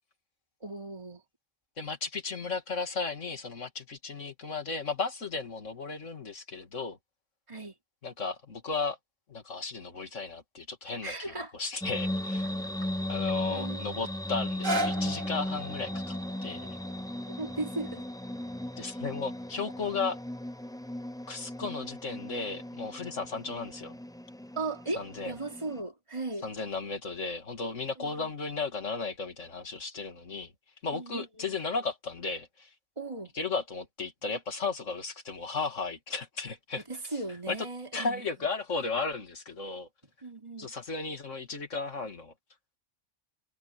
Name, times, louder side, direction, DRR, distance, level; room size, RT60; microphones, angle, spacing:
voice 1, 0.6-1.2 7.5-7.8 11.0-11.5 13.5-13.8 17.4-18.0 24.5-26.4 28.0-28.3 30.9-31.5 33.0-33.3 36.7-38.2 40.2-40.7, right 2 dB, 25° right, 3.3 m, -37 dB
voice 2, 1.8-7.0 8.0-9.0 9.3-12.5 13.1-16.2 16.4-16.8 18.8-20.2 21.3-24.0 25.0-25.3 26.4-30.5 30.8-32.7 33.3-36.8 37.5-37.6 37.9-39.9 40.6-42.3, left 4 dB, 75° left, 2.7 m, -35 dB
sound 1, 11.8-25.8, left 1 dB, 5° left, 0.5 m, -36 dB
sound 2, 14.4-20.5 21.1-21.2, right 1 dB, 85° right, 3.5 m, -38 dB
omnidirectional pair, 1.3 m